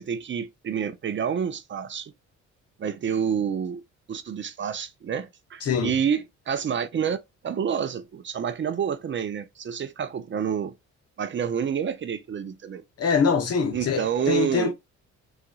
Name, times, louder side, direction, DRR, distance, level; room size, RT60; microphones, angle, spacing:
voice 1, 0.0-2.1 2.8-3.8 4.1-7.2 7.4-10.7 11.2-12.8 13.7-14.7, right 7 dB, 40° right, 0.5 m, -28 dB
voice 2, 5.6-5.9 13.0-14.7, left 5 dB, 55° left, 0.9 m, -24 dB
3.9 x 2.5 x 2.3 m
cardioid pair, 90°, 30 cm